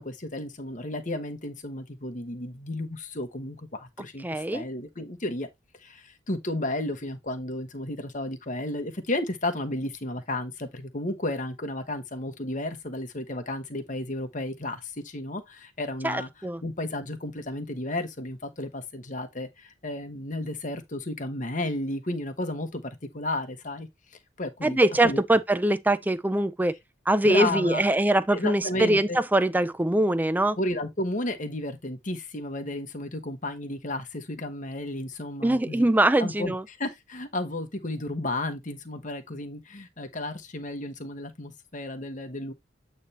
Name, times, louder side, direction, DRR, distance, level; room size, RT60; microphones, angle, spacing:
voice 1, 0.0-5.5 5.8-16.3 16.6-23.9 24.4-25.2 27.2-27.8 28.3-29.2 30.6-35.9 36.2-42.5, left 1 dB, 40° left, 1.2 m, -33 dB
voice 2, 4.2-4.6 16.0-16.6 24.6-26.8 27.1-30.6 35.4-36.6, right 1 dB, 10° right, 0.4 m, -23 dB
8.6 x 3.3 x 4.2 m
head